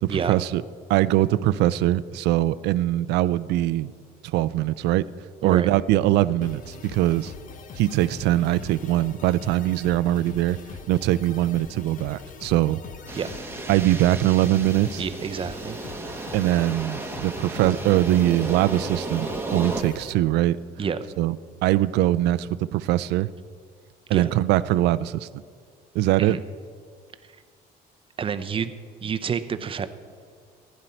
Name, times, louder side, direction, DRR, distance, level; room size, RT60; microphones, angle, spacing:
voice 1, 0.0-0.6 0.9-3.9 4.2-5.0 5.4-7.3 7.8-10.6 10.9-12.8 13.7-15.0 16.3-20.6 21.2-21.4 21.6-23.3 24.1-25.4 25.9-26.4, right 14 dB, 85° right, 16 dB, 0.4 m, -22 dB
sound 1, 6.4-20.1, left 6 dB, 50° left, 0.9 m, -43 dB
sound 2, 13.1-19.8, right 2 dB, 15° right, 1.3 m, -34 dB
voice 2, 15.0-15.8 20.8-21.0 24.1-24.3 26.2-26.4 28.2-28.7 29.0-29.9, right 7 dB, 30° right, 10 dB, 0.7 m, -28 dB
15.0 x 10.5 x 4.4 m, 2.1 s
cardioid pair, 110°, 17 cm